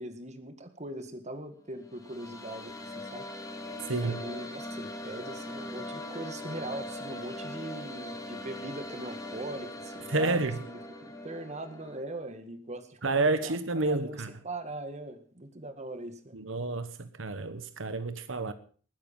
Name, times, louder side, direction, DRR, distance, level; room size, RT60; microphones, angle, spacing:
voice 1, 0.0-3.3 4.0-13.6 13.9-16.4, right 1 dB, 35° right, 1.9 m, -41 dB
sound 1, 1.7-12.0, left 1 dB, 20° left, 2.7 m, -41 dB
voice 2, 10.1-10.5 13.0-14.3 16.3-18.5, right 3 dB, 85° right, 1.2 m, -29 dB
20.5 x 9.6 x 5.6 m
head